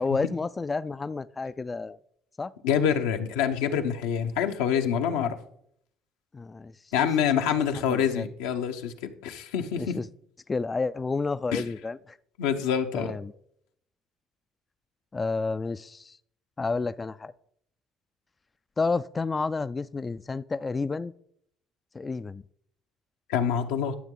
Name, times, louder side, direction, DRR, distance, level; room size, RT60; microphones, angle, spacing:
voice 1, 0.0-2.0 2.4-2.5 6.3-6.7 7.0-8.3 9.8-10.1 10.5-12.2 12.9-13.3 15.1-16.2 16.6-17.3 18.8-21.1 21.9-22.4, left 4 dB, 25° left, 14 dB, 0.3 m, -30 dB
voice 2, 2.6-5.4 6.9-8.9 9.2-10.0 11.5-11.6 12.4-13.1 23.3-24.0, left 8 dB, 85° left, 5 dB, 0.9 m, -26 dB
12.5 x 7.2 x 3.9 m, 0.69 s
supercardioid pair, 75°, 0 cm